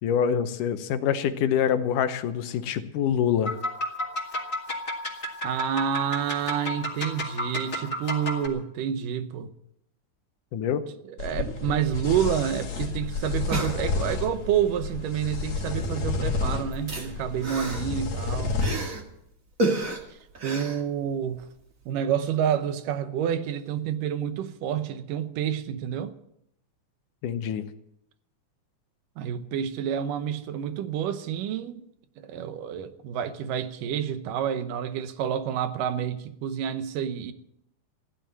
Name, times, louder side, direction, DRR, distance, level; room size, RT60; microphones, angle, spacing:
voice 1, 0.0-3.6 10.5-10.8 27.2-27.6, left 8 dB, 75° left, 2.4 m, -25 dB
sound 1, 3.5-8.5, left 1 dB, 25° left, 2.1 m, -32 dB
voice 2, 5.4-9.5 11.1-18.6 20.4-21.5 21.9-26.1 29.2-31.8 32.2-37.3, right 9 dB, 80° right, 2.6 m, -29 dB
sound 2, 11.2-18.7, left 4 dB, 55° left, 3.1 m, -30 dB
sound 3, 12.6-12.7 12.9-13.0 13.3-14.3 15.4-15.6 15.9-19.1 19.6-21.4 21.8-21.9, right 2 dB, 30° right, 1.7 m, -32 dB
15.5 x 11.5 x 7.5 m
omnidirectional pair, 3.8 m